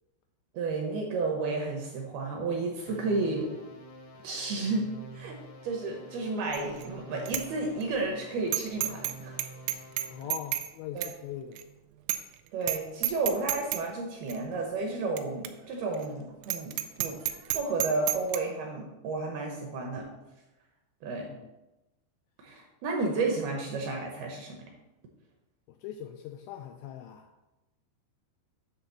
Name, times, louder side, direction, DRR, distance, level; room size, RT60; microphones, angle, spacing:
voice 1, 0.5-3.6 4.2-4.9 5.1-5.3 5.6-9.3 10.9-11.1 12.5-16.7 17.0-17.2 17.5-20.1 21.0-21.3 22.4-24.7, right 3 dB, 75° right, 1 dB, 2.4 m, -32 dB
sound 1, 2.9-10.4, right 2 dB, 65° left, 1.7 m, -48 dB
Bicycle bell, 6.5-6.9 7.3-7.4 7.8-7.9 8.5-9.1 9.4-10.7 11.0-11.1 11.6-11.7 12.1-12.4 12.6-12.8 13.0-13.8 14.3-14.4 15.2-15.3 15.5-15.6 15.9-16.1 16.4-18.4, right 13 dB, 90° right, 3.1 m, -30 dB
voice 2, 10.1-11.6 21.3-21.5 25.7-27.3, left 10 dB, 85° left, 5 dB, 2.5 m, -41 dB
9.8 x 3.5 x 7.0 m, 1.0 s
omnidirectional pair, 5.5 m